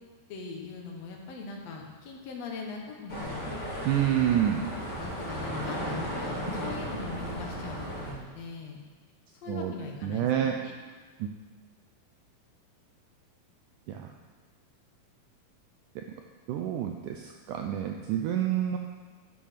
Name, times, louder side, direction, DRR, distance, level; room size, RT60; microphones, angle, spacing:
voice 1, 0.3-3.8 5.0-8.8 9.4-10.7 11.0-11.1, left 4 dB, 60° left, 0 dB, 1.9 m, -41 dB
sound 1, 3.1-8.1, equal, 20° left, 2.7 m, -35 dB
voice 2, 3.9-4.7 9.5-9.7 10.0-10.6 11.2-11.3 13.9-14.1 16.0-16.1 16.5-18.8, right 10 dB, 85° right, 3 dB, 1.8 m, -28 dB
10.0 x 7.4 x 5.8 m, 1.4 s
omnidirectional pair, 4.3 m